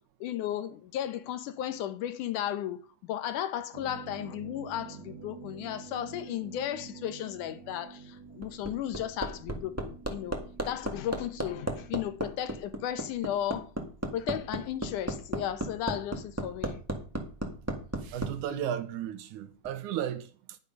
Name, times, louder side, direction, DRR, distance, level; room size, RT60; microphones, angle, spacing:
voice 1, 0.2-13.7 14.1-16.8, left 11 dB, 80° left, 2.4 m, -35 dB
sound 1, 3.7-11.9, right 5 dB, 55° right, 1.3 m, -48 dB
Hammer, 8.2-18.3 19.6-19.7, right 1 dB, 20° right, 0.4 m, -33 dB
voice 2, 17.7-20.6, right 10 dB, 80° right, 2.3 m, -35 dB
10.5 x 6.7 x 5.3 m
omnidirectional pair, 3.6 m